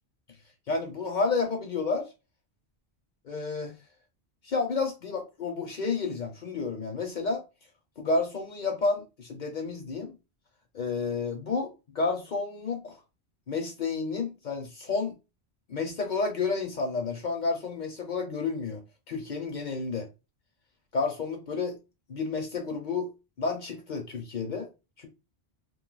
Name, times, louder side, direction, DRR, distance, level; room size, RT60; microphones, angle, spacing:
voice 1, 0.7-2.1 3.2-3.7 4.4-7.4 8.0-10.2 10.7-13.0 13.5-15.2 15.7-18.8 19.1-20.1 20.9-21.8 22.1-23.1 23.4-24.7 25.0-25.1, left 4 dB, 50° left, 0.7 m, -30 dB
2.5 x 2.3 x 3.8 m
omnidirectional pair, 1.1 m